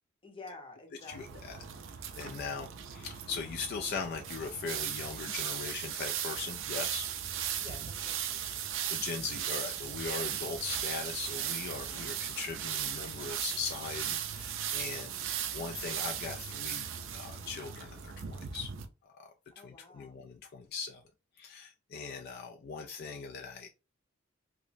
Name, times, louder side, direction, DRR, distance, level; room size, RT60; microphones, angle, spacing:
voice 1, 0.2-1.6 7.6-8.5 14.9-15.3 19.5-20.2, left 3 dB, 25° left, 4 dB, 0.7 m, -51 dB
voice 2, 1.1-1.6 1.9-7.1 8.9-15.1 15.5-18.7 19.0-19.3 19.6-21.0 21.4-23.7, left 5 dB, 50° left, 3 dB, 0.4 m, -40 dB
sound 1, 1.1-18.9, right 9 dB, 65° right, 0.5 m, -37 dB
4.9 x 2.1 x 2.6 m, 0.30 s
head